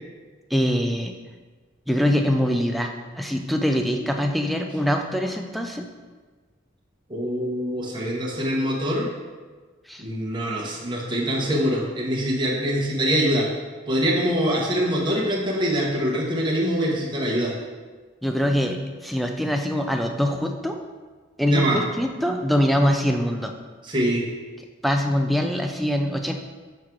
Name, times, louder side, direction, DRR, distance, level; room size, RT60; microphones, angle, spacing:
voice 1, 0.5-1.1 1.9-5.9 9.9-10.0 18.2-20.8 21.4-23.5 24.8-26.4, equal, ahead, 4 dB, 0.4 m, -23 dB
voice 2, 7.1-9.1 10.0-13.5 13.9-17.5 21.4-21.8 23.8-24.2, equal, 25° right, -3 dB, 1.0 m, -24 dB
6.5 x 3.6 x 4.5 m, 1.4 s
head